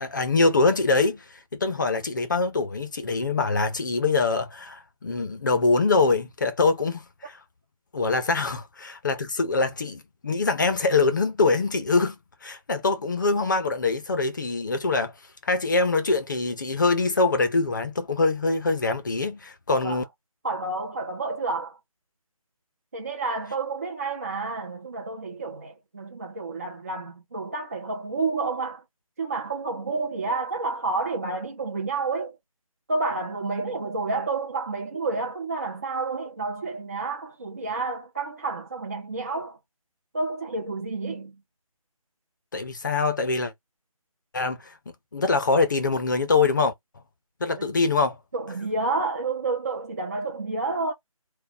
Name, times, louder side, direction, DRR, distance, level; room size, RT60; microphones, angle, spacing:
voice 1, 0.0-7.4 7.9-15.1 15.4-20.0 42.5-43.5 44.3-44.8 45.1-46.7 47.4-48.2, left 3 dB, 35° left, 0.6 m, -24 dB
voice 2, 20.4-21.8 22.9-28.8 29.2-32.4 32.9-39.6 40.1-41.4 47.6-47.7 48.3-50.9, right 3 dB, 25° right, 0.5 m, -30 dB
4.5 x 2.2 x 4.1 m
figure-of-eight pair, 165°, 19 cm